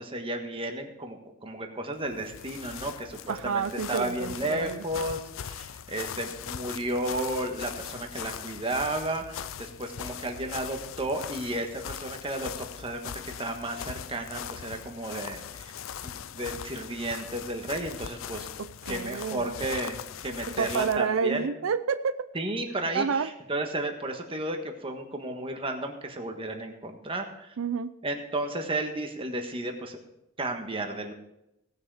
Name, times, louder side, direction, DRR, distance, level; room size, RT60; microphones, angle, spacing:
voice 1, 0.0-18.5 18.9-20.0 20.2-21.5 22.3-27.5 28.0-30.0 30.4-31.1, right 1 dB, 25° right, 4 dB, 1.4 m, -33 dB
sound 1, 2.0-21.1, left 8 dB, 75° left, 0.4 m, -40 dB
voice 2, 3.3-4.8 18.9-19.5 20.5-22.3 22.9-23.3 27.6-27.9, right 6 dB, 80° right, 11 dB, 0.5 m, -29 dB
17.5 x 6.4 x 4.9 m, 0.85 s
head